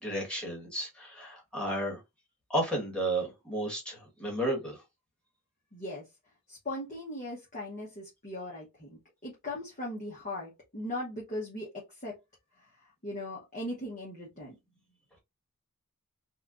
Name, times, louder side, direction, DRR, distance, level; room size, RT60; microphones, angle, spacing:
voice 1, 0.0-2.0 2.5-4.8, right 1 dB, 5° left, 1.5 m, -32 dB
voice 2, 5.7-6.0 6.5-11.7 12.0-12.1 13.0-14.5, left 1 dB, 35° left, 1.0 m, -38 dB
4.2 x 2.4 x 2.5 m
head